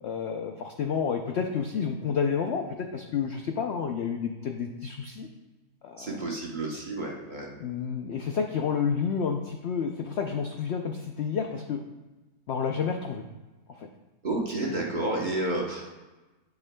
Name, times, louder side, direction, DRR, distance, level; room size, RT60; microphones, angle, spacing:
voice 1, 0.0-2.6 2.9-5.3 5.8-6.2 7.6-11.8 12.5-13.2 13.8-13.9, left 6 dB, 75° left, 4 dB, 0.6 m, -30 dB
voice 2, 6.0-7.5 14.2-15.8, right 2 dB, 35° right, -2 dB, 0.9 m, -30 dB
10.5 x 5.9 x 2.2 m, 1.2 s
omnidirectional pair, 1.7 m